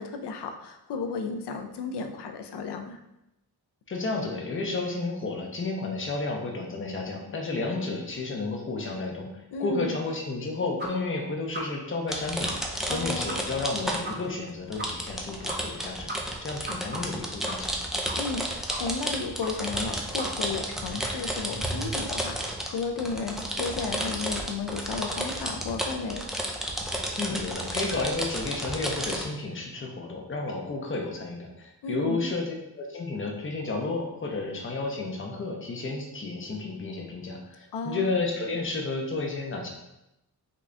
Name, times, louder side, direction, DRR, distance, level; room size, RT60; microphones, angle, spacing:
voice 1, 0.0-3.0 9.5-10.0 12.9-13.4 18.1-26.3 31.8-32.3 37.7-38.1, left 4 dB, 85° left, 6 dB, 0.5 m, -33 dB
voice 2, 3.9-9.3 9.6-16.1 16.4-17.7 27.2-39.7, left 3 dB, 30° left, 1 dB, 0.7 m, -32 dB
sound 1, 10.8-10.9 11.2-11.3 11.5-11.6 12.0-12.1 12.4-12.5 12.8-12.9 13.3-13.4 13.6-13.7 14.0-14.1 14.4-14.5 14.8-14.9 15.2-15.3 15.5-15.8 16.1-17.8 18.1-18.4 18.7-19.1 19.4-19.5 19.8-19.9 20.2-20.3, right 1 dB, 25° right, 0.8 m, -37 dB
sound 2, 12.1-14.3 14.7-29.3, right 1 dB, ahead, 0.4 m, -32 dB
3.8 x 2.4 x 3.2 m, 0.88 s
wide cardioid pair, 90°, 39 cm